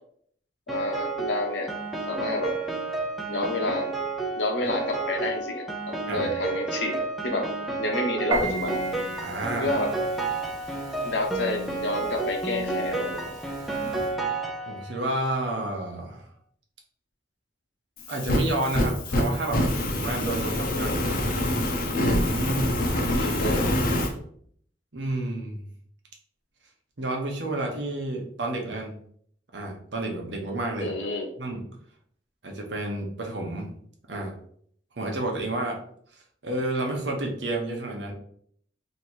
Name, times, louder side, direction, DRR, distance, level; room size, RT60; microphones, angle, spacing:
voice 1, 0.7-1.7 2.1-2.5 3.3-3.9 4.4-7.5 7.8-8.8 9.5-9.9 11.0-13.2 20.5-21.0 23.4-23.7 30.8-31.3, left 2 dB, 80° left, 2 dB, 0.9 m, -29 dB
Piano, 0.7-15.1, right 3 dB, ahead, 0.5 m, -31 dB
Piano 2, 8.3-14.1, right 1 dB, 20° right, 1.0 m, -36 dB
voice 2, 9.2-9.7 14.7-16.3 18.1-21.2 22.0-23.6 24.9-25.7 27.0-29.0 29.5-30.9 31.4-31.7 32.4-33.7 34.1-34.4 35.0-35.8 36.4-38.1, right 2 dB, 75° right, 1 dB, 1.0 m, -31 dB
Fire, 18.0-24.1, left 1 dB, 55° left, 0.7 m, -25 dB
3.0 x 2.8 x 4.5 m, 0.63 s
head